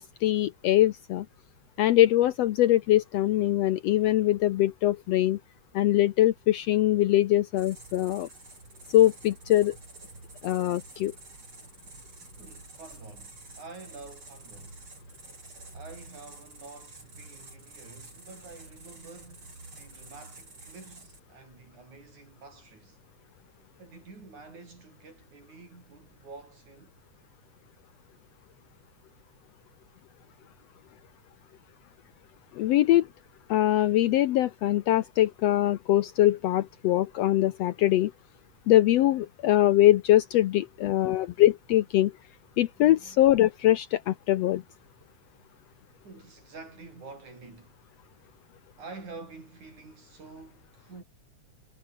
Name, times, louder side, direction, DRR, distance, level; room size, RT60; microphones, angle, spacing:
voice 1, 0.2-1.2 1.8-5.4 5.7-8.3 8.9-9.8 10.4-11.1 32.6-33.1 33.5-38.1 38.7-42.1 42.6-44.6, left 14 dB, 70° left, 1.7 m, -22 dB
sound 1, 7.6-21.2, right 3 dB, 40° right, 8.0 m, -49 dB
voice 2, 12.4-14.8 15.7-23.0 23.8-26.9 42.6-43.3 46.0-47.8 48.8-51.0, right 3 dB, 75° right, 8.0 m, -48 dB
omnidirectional pair, 3.4 m